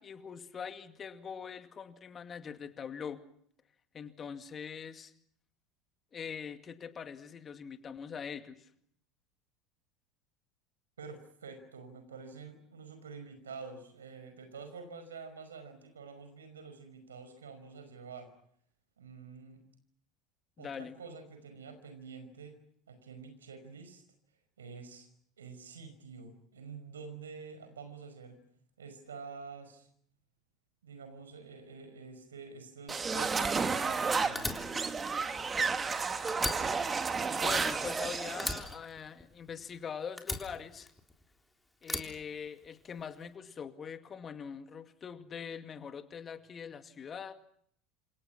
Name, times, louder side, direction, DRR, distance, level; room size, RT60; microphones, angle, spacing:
voice 1, 0.0-3.2 3.9-5.1 6.1-8.6 20.6-21.0 37.3-40.9 41.8-47.3, left 7 dB, 30° left, 9 dB, 2.3 m, -43 dB
voice 2, 11.0-18.3 19.0-19.6 20.6-22.5 22.9-24.0 24.6-25.1 25.4-28.4 28.8-29.9 30.8-34.5, right 5 dB, 75° right, 8 dB, 5.4 m, -48 dB
sound 1, 32.9-38.6, right 5 dB, 20° right, 2.1 m, -32 dB
Fire, 34.4-36.0 36.3-38.0 38.4-39.7 40.2-41.3 41.8-43.0, left 1 dB, 5° left, 3.6 m, -39 dB
28.0 x 28.0 x 6.0 m, 0.66 s
figure-of-eight pair, 70°, 0 cm